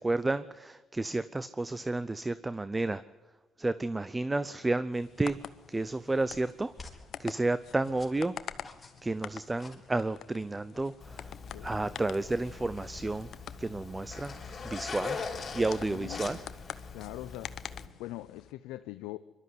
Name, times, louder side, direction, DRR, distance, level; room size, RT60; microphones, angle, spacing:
voice 1, 0.0-3.0 3.6-5.4 5.7-6.7 7.2-8.4 9.0-11.3 11.6-13.3 13.6-14.3 14.6-15.2 15.5-16.4, right 2 dB, 20° right, 15 dB, 0.6 m, -31 dB
sound 1, 4.9-18.5, left 9 dB, 65° left, 0.9 m, -47 dB
sound 2, 5.2-11.4, left 3 dB, 20° left, 3.8 m, -55 dB
Zipper (clothing), 11.0-17.9, left 5 dB, 40° left, 5.1 m, -41 dB
voice 2, 15.5-16.4 16.9-17.5 18.0-19.2, left 16 dB, 90° left, 11 dB, 0.6 m, -42 dB
22.5 x 12.5 x 9.6 m, 1.3 s
supercardioid pair, 75°, 0 cm